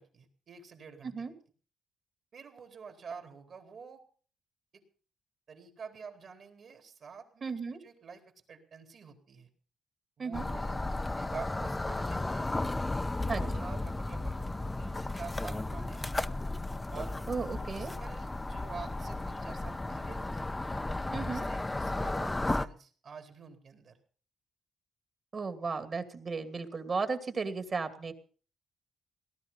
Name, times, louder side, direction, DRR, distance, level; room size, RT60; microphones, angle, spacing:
voice 1, 0.0-1.1 2.3-4.0 4.7-4.8 5.5-8.2 8.5-9.5 10.2-12.5 13.1-14.3 14.8-16.1 16.9-20.5 21.0-24.0, right 5 dB, 55° right, 5 dB, 4.1 m, -48 dB
voice 2, 7.4-7.8 10.2-10.5 13.3-13.6 17.3-17.9 21.1-21.4 25.3-28.1, right 4 dB, 40° right, 9 dB, 2.5 m, -35 dB
sound 1, 10.3-22.7, left 2 dB, 15° left, 0.8 m, -34 dB
18.5 x 12.5 x 5.6 m, 0.41 s
cardioid pair, 105°, 0 cm